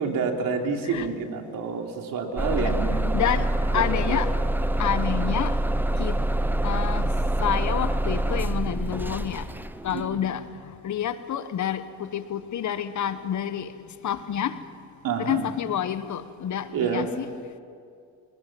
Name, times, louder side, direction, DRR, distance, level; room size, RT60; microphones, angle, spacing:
voice 1, 0.0-3.1 3.7-4.2 5.1-5.2 9.9-10.2 15.0-15.4 16.7-17.1, right 5 dB, 70° right, 3 dB, 3.2 m, -28 dB
Bus / Engine starting, 2.4-10.1, right 1 dB, 5° right, 0.7 m, -26 dB
voice 2, 3.1-4.3 4.8-5.6 5.9-6.2 6.6-7.1 7.4-9.5 9.8-13.7 14.0-14.8 15.2-17.3, left 9 dB, 55° left, 12 dB, 1.2 m, -29 dB
24.5 x 19.5 x 7.7 m, 2.3 s
supercardioid pair, 80°, 35 cm